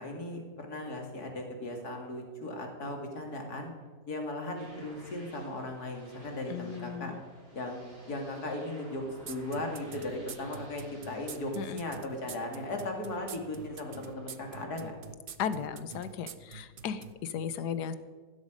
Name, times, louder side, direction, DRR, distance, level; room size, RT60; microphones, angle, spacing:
voice 1, 0.0-3.7 4.1-7.1 7.5-7.8 8.1-14.9, left 1 dB, 70° left, 2 dB, 3.0 m, -37 dB
sound 1, 4.6-14.6, equal, 65° right, 6.7 m, -56 dB
voice 2, 6.5-7.1 11.6-11.8 15.4-17.9, left 7 dB, 85° left, 13 dB, 1.4 m, -35 dB
sound 2, 9.3-17.1, right 7 dB, 45° right, 0.7 m, -45 dB
16.0 x 12.5 x 5.2 m, 1.4 s
omnidirectional pair, 1.7 m